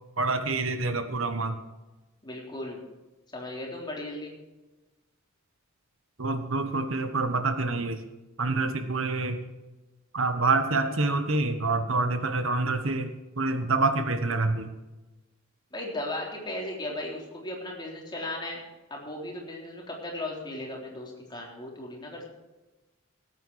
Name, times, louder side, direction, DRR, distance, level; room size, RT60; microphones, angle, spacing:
voice 1, 0.2-1.6 6.2-8.0 8.4-9.4 10.1-14.7, right 3 dB, 70° right, 9 dB, 1.3 m, -27 dB
voice 2, 2.2-2.8 3.3-4.3 15.7-18.6 18.9-22.2, left 1 dB, 20° left, -2 dB, 3.7 m, -36 dB
18.5 x 9.1 x 4.8 m, 1.1 s
head